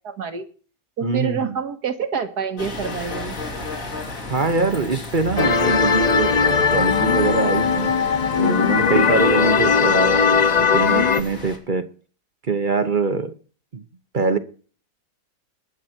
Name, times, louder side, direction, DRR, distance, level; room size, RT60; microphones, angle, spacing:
voice 1, 0.0-0.5 1.0-3.4 9.2-9.3, right 6 dB, 70° right, 2.1 m, -27 dB
voice 2, 1.0-1.6 4.3-8.0 8.4-11.9 12.5-13.3 13.7-13.8 14.1-14.4, right 4 dB, 35° right, 0.9 m, -23 dB
sound 1, 2.6-11.6, left 2 dB, 50° left, 3.3 m, -34 dB
sound 2, 5.4-11.2, left 6 dB, 85° left, 0.3 m, -18 dB
21.0 x 7.8 x 4.4 m
omnidirectional pair, 1.8 m